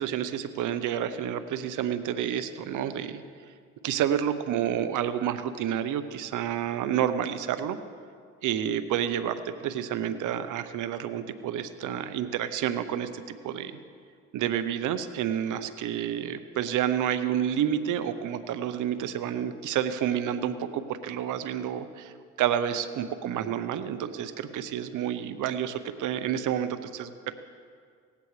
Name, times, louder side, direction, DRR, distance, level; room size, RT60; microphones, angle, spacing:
voice 1, 0.0-3.2 3.8-7.8 8.4-13.7 14.3-27.3, right 9 dB, 80° right, 11 dB, 0.8 m, -29 dB
18.5 x 15.5 x 3.2 m, 2.1 s
cardioid pair, 90°, 30 cm